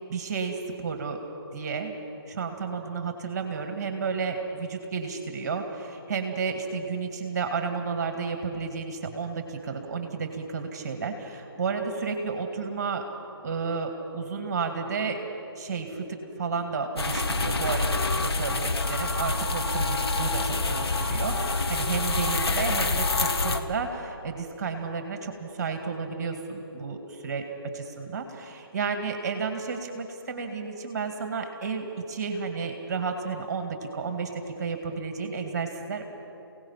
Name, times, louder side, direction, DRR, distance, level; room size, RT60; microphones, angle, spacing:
voice 1, 0.1-1.2 1.5-1.9 2.3-13.1 13.4-15.2 15.5-27.4 27.7-36.0, right 5 dB, 40° right, 5 dB, 2.1 m, -32 dB
sound 1, 17.0-23.6, left 3 dB, 75° left, 1.8 m, -27 dB
28.5 x 17.5 x 5.8 m, 2.9 s
figure-of-eight pair, 150°, 13 cm